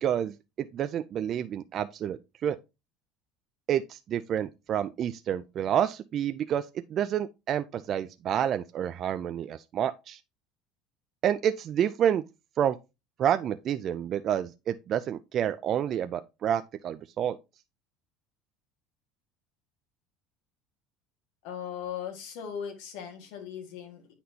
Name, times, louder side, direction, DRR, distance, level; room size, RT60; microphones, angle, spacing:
voice 1, 0.0-2.6 3.7-6.7 6.9-10.2 11.2-12.2 12.6-12.8 13.2-17.4, right 9 dB, 40° right, 0.3 m, -29 dB
voice 2, 21.4-24.1, left 8 dB, 75° left, 1.7 m, -38 dB
9.2 x 4.2 x 2.7 m
cardioid pair, 135°, 0 cm